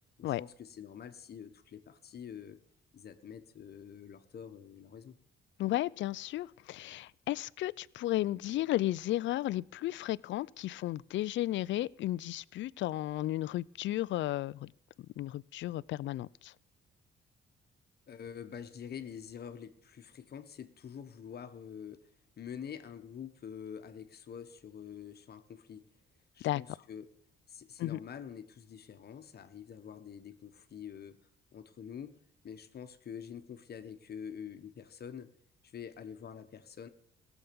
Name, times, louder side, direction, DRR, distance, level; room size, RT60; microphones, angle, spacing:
voice 1, 0.2-2.6 2.9-5.2 18.1-22.1 22.4-25.8 26.3-27.1 27.5-31.2 31.5-32.2 32.4-35.3 35.6-36.9, left 8 dB, 55° left, 8 dB, 1.3 m, -46 dB
voice 2, 5.6-14.7 15.2-16.5 26.4-26.6 27.8-28.0, left 15 dB, 70° left, 20 dB, 0.4 m, -34 dB
17.0 x 7.2 x 7.0 m, 0.69 s
cardioid pair, 90°, 20 cm